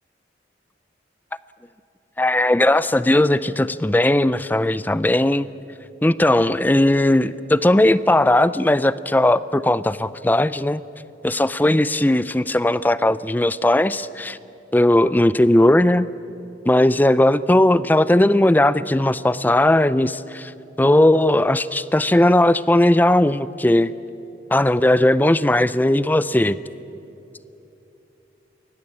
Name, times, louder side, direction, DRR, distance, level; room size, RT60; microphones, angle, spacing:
voice 1, 2.2-5.5 6.0-10.8 11.2-14.4 14.7-16.1 16.7-20.5 20.8-23.9 24.5-26.6, left 1 dB, 10° left, 17 dB, 0.4 m, -17 dB
23.5 x 18.0 x 8.8 m, 2.9 s
head